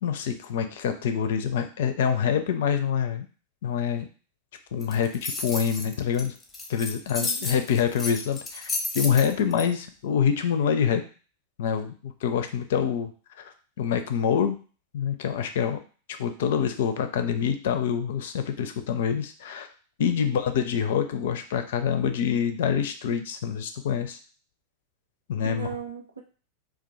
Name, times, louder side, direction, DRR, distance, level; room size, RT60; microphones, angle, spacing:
voice 1, 0.0-3.3 3.6-4.1 4.7-6.3 6.7-11.0 11.6-13.1 13.4-14.6 14.9-15.8 16.1-19.7 20.0-24.2 25.3-25.7, left 7 dB, 55° left, 8 dB, 0.4 m, -26 dB
sound 1, 4.8-9.6, left 3 dB, 15° left, 0.6 m, -32 dB
voice 2, 20.0-20.4 25.4-26.2, right 6 dB, 80° right, 2 dB, 0.4 m, -37 dB
2.4 x 2.2 x 3.8 m, 0.38 s
figure-of-eight pair, 90°, 0 cm